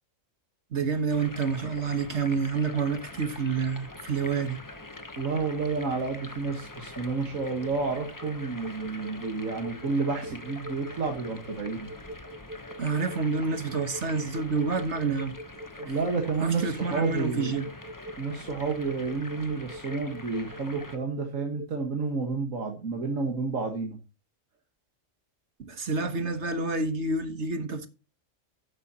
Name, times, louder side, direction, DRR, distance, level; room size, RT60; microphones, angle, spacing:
voice 1, 0.7-4.6 12.8-15.3 16.4-17.7 25.6-27.9, right 4 dB, 60° right, 1.7 m, -28 dB
sound 1, 1.1-21.0, left 2 dB, 15° left, 0.9 m, -44 dB
voice 2, 5.2-11.9 15.8-17.5 18.2-24.0, right 4 dB, 80° right, 2.0 m, -30 dB
sound 2, 7.6-22.1, right 1 dB, 10° right, 7.8 m, -42 dB
13.0 x 10.5 x 2.9 m
omnidirectional pair, 1.4 m